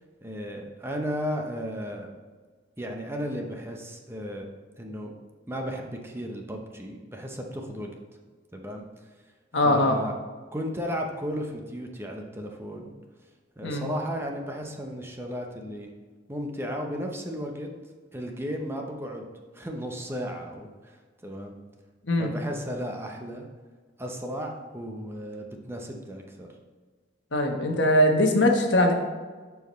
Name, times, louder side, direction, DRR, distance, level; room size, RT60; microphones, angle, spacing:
voice 1, 0.2-2.1 2.8-4.5 4.8-5.1 5.5-8.0 8.5-8.8 9.6-10.2 10.5-12.9 13.6-15.9 16.3-17.7 18.1-19.3 19.5-20.9 21.2-21.6 22.2-23.5 24.0-26.5, equal, 15° right, 2 dB, 0.8 m, -34 dB
voice 2, 9.5-10.0 13.6-13.9 22.1-22.3 27.3-28.9, left 1 dB, 80° left, 2 dB, 1.1 m, -21 dB
12.0 x 4.7 x 3.1 m, 1.4 s
head